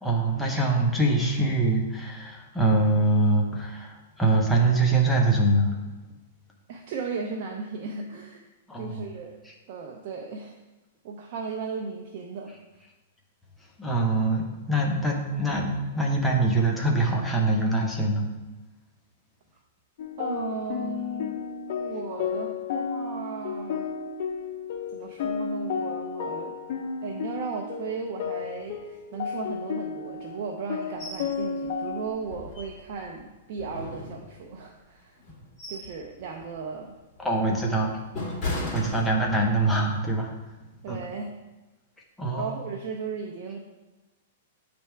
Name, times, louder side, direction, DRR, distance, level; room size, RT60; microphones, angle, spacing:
voice 1, 0.0-5.8 8.7-9.1 13.8-18.3 37.2-37.9 38.5-40.3 40.9-41.0 42.2-42.5, right 2 dB, 5° left, -2 dB, 0.9 m, -24 dB
voice 2, 6.7-8.4 8.8-9.4 9.7-10.6 11.0-12.5 20.2-21.4 21.8-23.9 24.9-26.6 27.0-35.2 35.7-36.9 37.4-37.6 38.5-38.9 40.8-41.3 42.4-43.6, right 5 dB, 50° right, 1 dB, 0.7 m, -36 dB
sound 1, 20.0-32.1, left 6 dB, 55° left, 0.6 m, -33 dB
sound 2, 31.0-31.3 31.7-31.8 32.3-33.1 33.6-34.6 35.2-36.0 36.4-36.6 37.2-39.6 40.0-40.2, left 2 dB, 20° left, 2.3 m, -36 dB
8.4 x 3.5 x 4.5 m, 1.1 s
hypercardioid pair, 150°, 0 cm